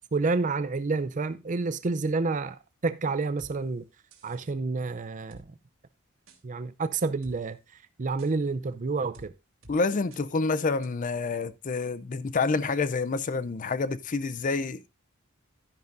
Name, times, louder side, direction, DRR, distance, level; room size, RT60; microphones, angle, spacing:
voice 1, 0.1-3.8 4.2-5.4 6.4-7.6 8.0-9.3, right 3 dB, 40° right, 0.5 m, -29 dB
sound 1, 3.4-3.5 4.1-4.5 5.3-5.4 6.3-6.4 7.0-7.4 8.2-8.3 9.1-9.3 9.6-9.8 10.1-10.2 10.8-10.9, right 2 dB, 70° right, 2.5 m, -50 dB
voice 2, 9.7-14.9, left 4 dB, 40° left, 0.5 m, -28 dB
12.0 x 10.5 x 2.6 m
head